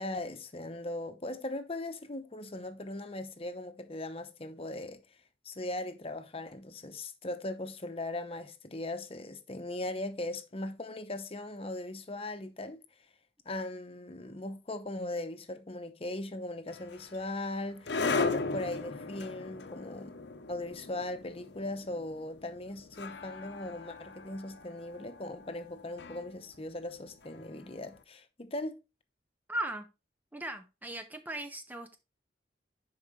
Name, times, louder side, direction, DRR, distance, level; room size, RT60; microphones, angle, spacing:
voice 1, 0.0-5.0 5.4-12.8 13.4-20.2 20.5-28.8, left 2 dB, 30° left, 0.8 m, -39 dB
sound 1, 16.7-27.8, left 3 dB, 65° left, 0.8 m, -38 dB
voice 2, 29.5-29.9 30.3-32.0, right 1 dB, 10° right, 0.5 m, -38 dB
10.0 x 4.8 x 3.2 m
head